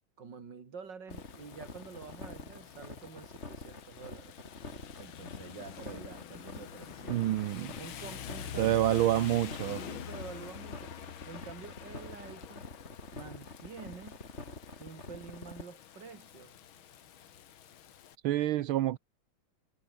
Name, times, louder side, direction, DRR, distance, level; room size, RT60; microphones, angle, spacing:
voice 1, 0.2-4.3 5.0-7.4 7.8-8.9 9.8-10.9 11.2-12.7 13.1-14.2 14.8-16.5, right 5 dB, 55° right, 3.2 m, -48 dB
Rain, 1.1-18.2, left 10 dB, 75° left, 2.1 m, -47 dB
sound 1, 1.1-15.6, left 2 dB, 30° left, 4.0 m, -46 dB
voice 2, 7.1-7.7 8.6-9.8 18.2-19.0, right 14 dB, 80° right, 1.7 m, -28 dB
omnidirectional pair, 2.3 m